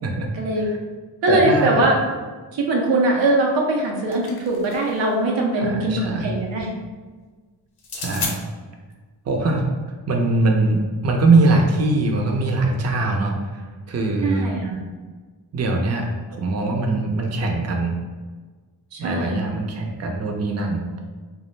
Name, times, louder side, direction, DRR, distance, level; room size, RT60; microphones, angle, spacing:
voice 1, 0.3-0.7 1.2-2.0 2.5-6.7 14.2-14.8 18.9-19.4, right 2 dB, 85° right, -1 dB, 0.6 m, -21 dB
voice 2, 1.3-1.8 5.6-6.3 7.9-8.4 9.2-9.6 10.1-14.5 15.5-17.9 19.0-20.8, right 2 dB, 35° right, 1 dB, 0.5 m, -22 dB
sound 1, 3.7-5.0 7.8-8.4, left 4 dB, 60° left, 0.6 m, -32 dB
2.3 x 2.0 x 3.1 m, 1.4 s
cardioid pair, 45°, 44 cm